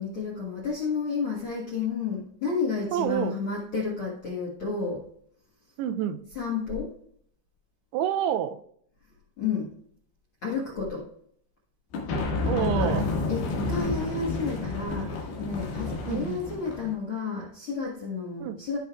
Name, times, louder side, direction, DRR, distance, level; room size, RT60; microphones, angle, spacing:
voice 1, 0.0-5.0 6.3-6.9 9.4-9.7 10.4-11.1 12.5-13.0 13.3-18.8, left 5 dB, 55° left, -4 dB, 1.5 m, -31 dB
voice 2, 2.9-3.4 5.8-6.2 7.9-8.6 12.4-13.1 16.1-16.4 18.4-18.7, right 10 dB, 85° right, 10 dB, 2.6 m, -28 dB
sound 1, 11.9-16.9, left 3 dB, 85° left, 4.0 m, -30 dB
16.5 x 5.6 x 2.4 m, 0.64 s
omnidirectional pair, 4.7 m